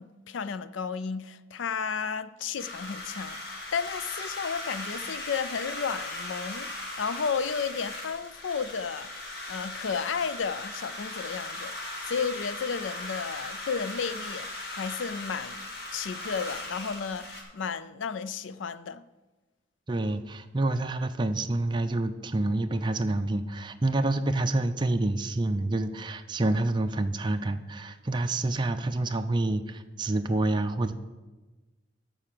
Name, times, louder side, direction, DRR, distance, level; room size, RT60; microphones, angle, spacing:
voice 1, 0.0-9.1 9.5-19.0, left 6 dB, 85° left, 0.5 m, -33 dB
sound 1, 2.6-17.4, left 2 dB, 55° left, 1.9 m, -38 dB
voice 2, 19.9-30.9, right 2 dB, 25° right, 0.5 m, -28 dB
13.5 x 4.7 x 6.7 m
head